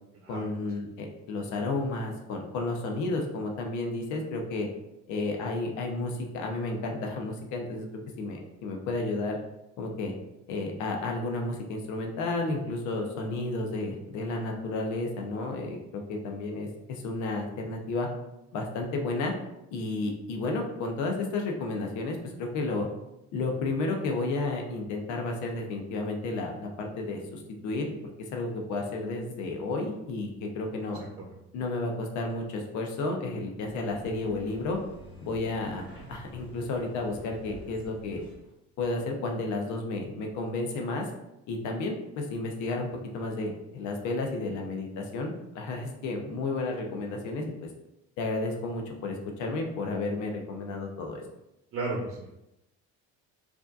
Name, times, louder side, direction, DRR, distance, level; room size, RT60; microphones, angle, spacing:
voice 1, 0.3-4.7 5.1-7.9 8.2-9.4 9.8-10.1 10.5-18.1 18.5-19.3 19.7-22.9 23.3-27.9 28.3-31.0 31.5-34.8 35.2-38.2 38.8-41.0 41.5-42.9 43.1-47.7 48.2-51.2, left 2 dB, 75° left, 2 dB, 0.8 m, -32 dB
sound 1, 33.5-38.5, right 1 dB, 15° left, 1.3 m, -49 dB
voice 2, 51.7-52.3, right 2 dB, 45° right, -3 dB, 0.8 m, -34 dB
4.8 x 2.7 x 2.5 m, 0.88 s
cardioid pair, 175°, 30 cm